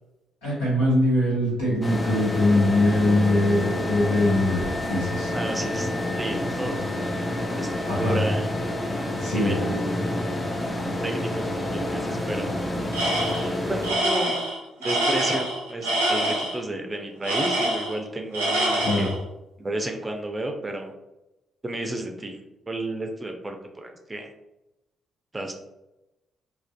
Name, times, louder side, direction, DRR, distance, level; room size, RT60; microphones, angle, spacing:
voice 1, 0.4-5.3 7.9-8.2 9.2-9.5 18.8-19.1, left 1 dB, 80° left, -6 dB, 1.0 m, -22 dB
sound 1, 1.8-13.9, left 1 dB, 25° left, 0.5 m, -28 dB
voice 2, 5.3-5.9 6.2-6.8 7.4-7.7 8.0-8.5 9.2-10.4 11.0-12.5 13.4-14.4 14.8-19.1 19.6-20.9 21.6-22.4 22.7-24.3 25.3-25.5, right 2 dB, 25° right, 3 dB, 0.5 m, -32 dB
Tools, 12.9-13.5 13.8-16.6 17.2-18.1 18.3-19.2, right 1 dB, 90° right, 0.5 m, -25 dB
2.5 x 2.2 x 2.2 m, 0.94 s
hypercardioid pair, 45°, 0 cm